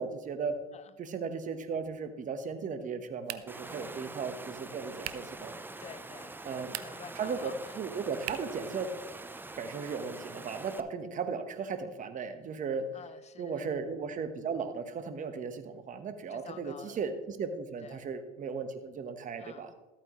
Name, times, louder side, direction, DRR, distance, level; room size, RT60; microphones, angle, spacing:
voice 1, 0.0-0.6 1.0-5.5 6.4-6.7 7.1-8.9 9.6-12.9 13.4-19.7, right 5 dB, 40° right, 9 dB, 1.3 m, -36 dB
sound 1, 3.2-3.7 5.0-5.4 6.6-7.2 8.2-8.6, right 15 dB, 80° right, 0.6 m, -41 dB
Water, 3.5-10.8, right 2 dB, 10° right, 0.7 m, -45 dB
voice 2, 3.7-4.1 5.8-6.4 6.8-7.8 12.9-13.7 16.3-17.0 17.8-18.1 19.4-19.7, left 7 dB, 35° left, 13 dB, 0.8 m, -50 dB
13.5 x 8.8 x 3.1 m, 1.2 s
supercardioid pair, 80°, 20 cm